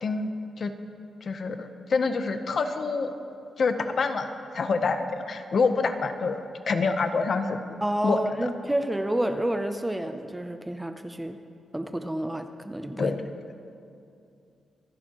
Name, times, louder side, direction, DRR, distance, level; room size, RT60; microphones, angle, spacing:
voice 1, 0.0-0.3 0.6-0.7 1.2-3.1 3.6-6.4 6.7-7.6 8.0-8.5 13.0-13.2, left 4 dB, 45° left, 7 dB, 0.8 m, -26 dB
voice 2, 7.8-11.4 11.7-13.2, right 1 dB, 10° right, 7 dB, 0.5 m, -29 dB
26.5 x 11.0 x 3.0 m, 2.5 s
wide cardioid pair, 160°, 0 cm